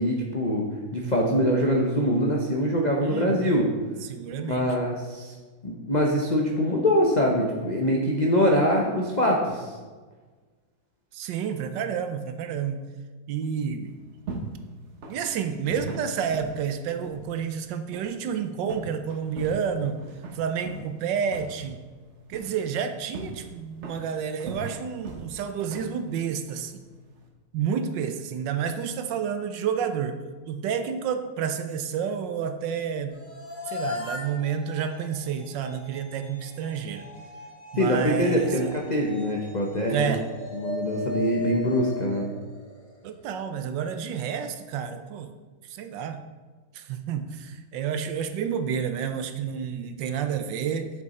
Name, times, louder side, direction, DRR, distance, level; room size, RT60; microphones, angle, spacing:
voice 1, 0.0-3.7 4.4-5.3 5.6-9.7 37.8-40.2 40.5-42.3, equal, 75° left, -1 dB, 0.4 m, -24 dB
voice 2, 3.0-3.6 4.0-4.7 11.1-12.8 13.3-13.9 15.1-20.0 20.3-21.8 22.3-26.8 27.5-30.2 30.5-33.2 33.7-37.0 37.7-38.7 39.9-40.2 43.0-45.3 45.7-46.2 46.7-50.9, right 7 dB, 75° right, 8 dB, 1.3 m, -30 dB
sound 1, 13.8-27.3, right 3 dB, 45° right, 1.0 m, -41 dB
sound 2, 33.1-43.3, left 1 dB, 40° left, 2.1 m, -38 dB
7.1 x 6.6 x 4.2 m, 1.4 s
omnidirectional pair, 2.1 m